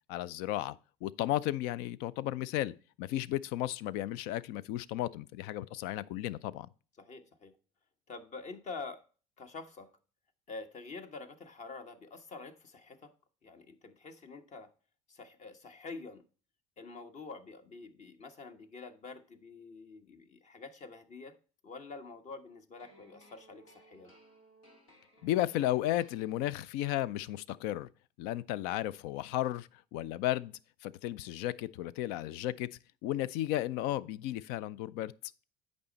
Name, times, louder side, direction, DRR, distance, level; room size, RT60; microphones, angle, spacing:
voice 1, 0.1-6.7 25.2-27.9 28.2-30.5 30.8-32.7 33.0-35.1, left 14 dB, 70° left, 0.4 m, -34 dB
voice 2, 7.0-7.5 8.1-9.0 9.4-9.9 10.5-13.1 13.4-14.7 15.1-16.2 16.8-21.4 21.6-24.1, left 4 dB, 45° left, 1.2 m, -47 dB
sound 1, 22.8-26.9, right 1 dB, 85° left, 2.2 m, -62 dB
8.6 x 5.3 x 4.0 m
hypercardioid pair, 65°, 17 cm